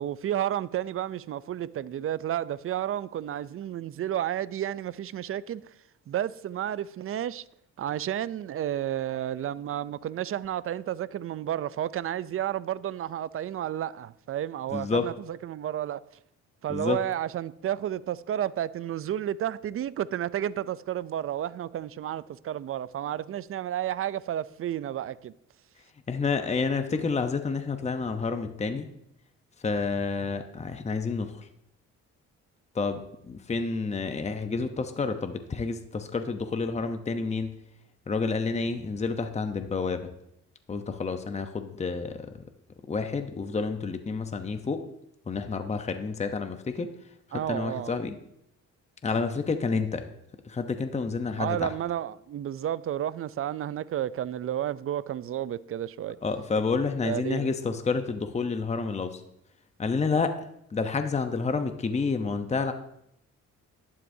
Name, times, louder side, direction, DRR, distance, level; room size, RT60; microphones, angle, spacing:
voice 1, 0.0-5.6 6.1-7.4 7.8-16.0 16.6-25.3 47.3-48.0 51.4-56.2 57.0-57.5, right 11 dB, 45° right, 0.5 m, -31 dB
voice 2, 14.7-15.1 16.7-17.0 26.1-28.9 29.6-31.5 32.7-37.5 38.1-40.1 40.7-42.3 42.9-44.8 45.3-46.9 47.3-48.1 49.0-50.1 50.4-51.7 56.2-59.2 59.8-62.7, left 4 dB, 20° left, 0.8 m, -29 dB
11.5 x 11.0 x 2.7 m
cardioid pair, 90°, 30 cm